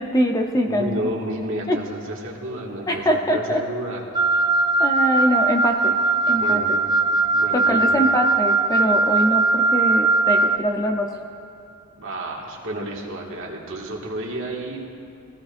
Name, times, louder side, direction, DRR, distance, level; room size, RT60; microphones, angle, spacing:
voice 1, 0.0-1.1 1.7-1.8 2.9-3.6 4.8-6.0 6.3-6.8 7.5-11.1, equal, 15° left, 2 dB, 0.7 m, -23 dB
voice 2, 0.7-4.0 6.3-6.7 7.3-8.1 12.0-14.8, right 1 dB, 60° right, -2 dB, 1.9 m, -31 dB
Wind instrument woodwind instrument, 4.1-10.6, right 3 dB, 20° right, 0.6 m, -20 dB
21.5 x 15.5 x 2.6 m, 2.6 s
head